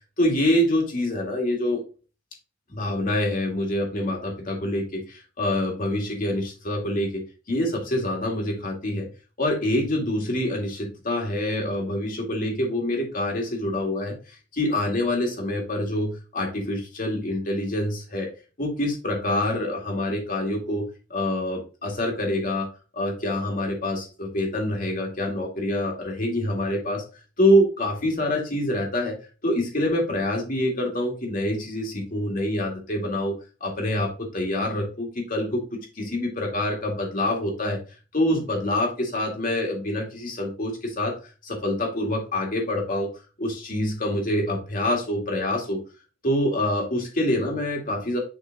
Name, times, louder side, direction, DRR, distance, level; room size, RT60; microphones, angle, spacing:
voice 1, 0.2-1.8 2.7-9.1 9.4-14.2 14.5-18.3 18.6-20.9 21.1-22.7 22.9-27.0 27.4-29.2 29.4-33.4 33.6-37.8 38.1-41.2 41.4-43.1 43.4-45.8 46.2-48.2, left 1 dB, 45° left, 0 dB, 2.0 m, -26 dB
6.9 x 3.8 x 3.8 m, 0.33 s
head